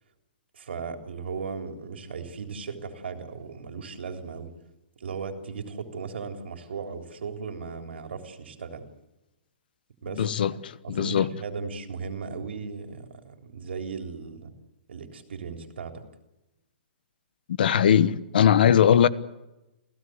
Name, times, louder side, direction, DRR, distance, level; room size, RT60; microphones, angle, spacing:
voice 1, 0.5-4.5 5.0-8.9 10.0-10.3 10.8-14.5 14.9-16.0, right 5 dB, 80° right, 3.7 m, -37 dB
voice 2, 10.2-11.3 17.6-19.1, left 9 dB, 55° left, 1.2 m, -20 dB
28.5 x 16.0 x 8.0 m
hypercardioid pair, 170°, 6 cm